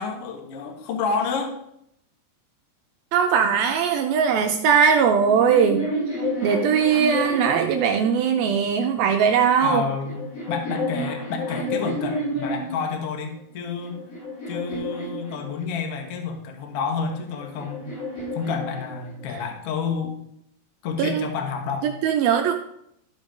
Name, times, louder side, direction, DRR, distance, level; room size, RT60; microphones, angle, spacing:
voice 1, 0.0-1.6 9.6-10.2 10.5-14.0 14.5-17.9 18.3-20.2 20.8-21.9, left 5 dB, 85° left, 4 dB, 1.3 m, -29 dB
voice 2, 3.1-5.9 6.4-9.9 21.0-21.3 21.8-22.6, right 7 dB, 80° right, 4 dB, 2.2 m, -20 dB
sound 1, 5.1-8.5 9.5-12.9 13.5-15.9 17.0-19.4, left 1 dB, 60° left, 4.7 m, -31 dB
13.5 x 5.4 x 5.2 m, 0.74 s
omnidirectional pair, 4.9 m